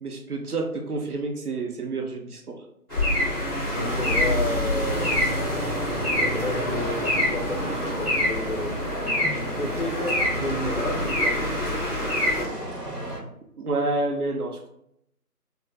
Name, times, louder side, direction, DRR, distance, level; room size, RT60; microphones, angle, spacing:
voice 1, 0.0-2.6 13.6-14.7, right 2 dB, 70° right, 2 dB, 0.7 m, -29 dB
sound 1, 2.9-12.4, left 1 dB, 15° left, 1.4 m, -26 dB
voice 2, 3.7-5.4 6.0-8.8 9.3-11.4, left 1 dB, 50° left, 1 dB, 0.7 m, -31 dB
sound 2, 3.7-13.2, right 1 dB, 90° right, 1.0 m, -35 dB
3.1 x 2.2 x 3.6 m, 0.76 s
figure-of-eight pair, 165°, 47 cm